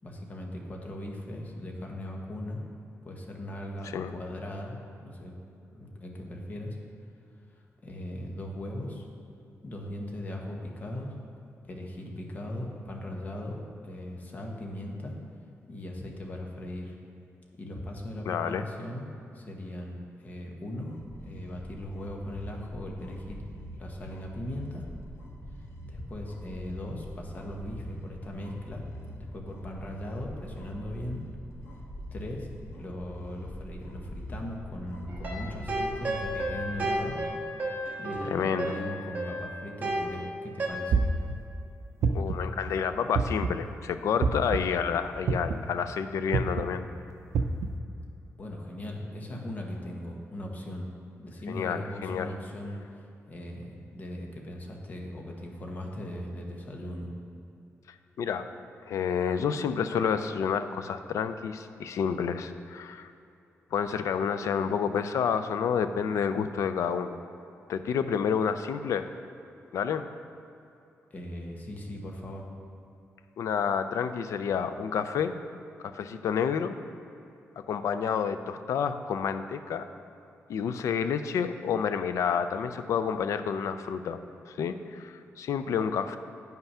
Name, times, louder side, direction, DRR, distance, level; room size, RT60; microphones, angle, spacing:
voice 1, 0.0-2.6 3.0-5.3 5.7-6.8 7.5-9.0 9.6-11.1 11.6-15.1 15.7-16.9 17.6-19.1 19.3-20.9 21.2-24.8 25.8-28.8 29.1-31.2 32.1-32.5 32.8-37.2 38.0-41.0 48.4-50.9 51.2-57.1 71.1-72.4, left 1 dB, 30° left, 0 dB, 1.1 m, -39 dB
voice 2, 18.3-18.7 38.2-38.7 42.1-46.8 51.5-52.3 58.2-58.5 58.9-63.1 63.7-67.2 67.7-69.1 69.7-70.1 73.4-75.4 75.9-76.8 77.6-79.9 80.5-84.2 84.5-86.2, left 7 dB, 90° left, 10 dB, 0.5 m, -29 dB
sound 1, 20.9-37.3, equal, 60° left, 1.3 m, -43 dB
sound 2, 35.1-40.7, right 1 dB, 35° right, 1.3 m, -33 dB
sound 3, 40.9-41.3 42.0-42.5 43.1-43.6 44.2-44.6 45.3-45.7 46.3-46.6 47.3-47.7, right 5 dB, 70° right, 0.5 m, -25 dB
9.0 x 5.8 x 5.5 m, 2.7 s
wide cardioid pair, 175°, 5 cm